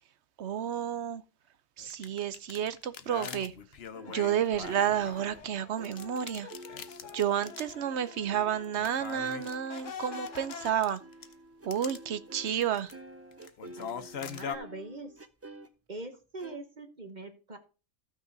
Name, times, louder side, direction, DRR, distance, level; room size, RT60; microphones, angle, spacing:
voice 1, 0.4-1.2 1.8-3.5 4.1-6.5 7.1-11.0 11.7-12.9, right 9 dB, 65° right, 1.0 m, -31 dB
sound 1, 1.8-5.4 5.8-7.8 8.1-8.2 8.6-11.3 11.7-12.0 12.5-12.9 13.3-14.5, left 7 dB, 60° left, 1.0 m, -42 dB
sound 2, 3.9-12.6 12.9-15.7 16.4-16.6, right 2 dB, 20° right, 0.4 m, -50 dB
sound 3, 4.1-8.7 9.0-10.7, left 6 dB, 75° left, 1.3 m, -47 dB
voice 2, 13.8-15.1 15.9-17.6, right 2 dB, 35° right, 1.4 m, -43 dB
13.5 x 6.1 x 4.0 m
omnidirectional pair, 1.3 m